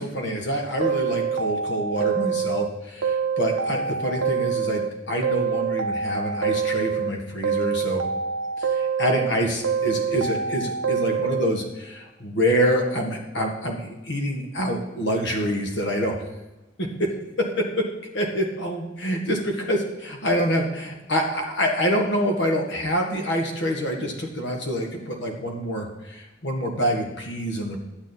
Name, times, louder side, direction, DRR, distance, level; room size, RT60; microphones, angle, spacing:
voice 1, 0.0-8.0 8.6-16.1 16.8-17.1 17.4-17.9 18.1-27.8, equal, 65° left, 2 dB, 1.9 m, -26 dB
sound 1, 0.8-2.7 3.0-4.9 5.2-7.1 7.4-9.3 9.6-11.5, right 6 dB, 90° right, 0.6 m, -25 dB
11.0 x 9.3 x 4.2 m, 1.0 s
head